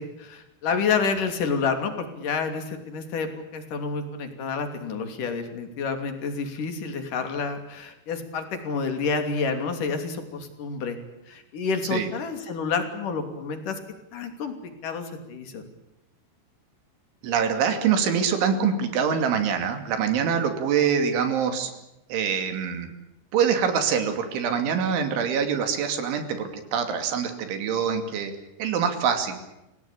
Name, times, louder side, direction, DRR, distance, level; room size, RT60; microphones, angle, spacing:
voice 1, 0.0-11.0 11.3-13.8 14.1-14.5 14.8-15.6, left 5 dB, 50° left, 6 dB, 4.1 m, -29 dB
voice 2, 17.2-21.7 22.1-22.9 23.3-28.3 28.6-29.4, right 7 dB, 80° right, 7 dB, 5.0 m, -24 dB
28.5 x 18.0 x 8.6 m, 0.93 s
omnidirectional pair, 5.4 m